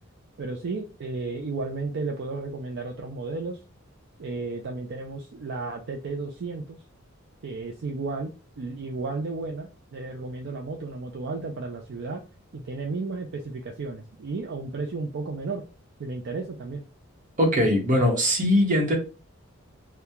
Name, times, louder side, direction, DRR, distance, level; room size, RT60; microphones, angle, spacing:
voice 1, 0.4-3.6 4.2-6.8 7.4-8.3 8.6-12.2 12.5-15.6 16.0-16.9, right 3 dB, 55° right, 0.4 m, -33 dB
voice 2, 17.4-19.0, left 1 dB, 40° right, 1.0 m, -21 dB
2.8 x 2.2 x 3.5 m
head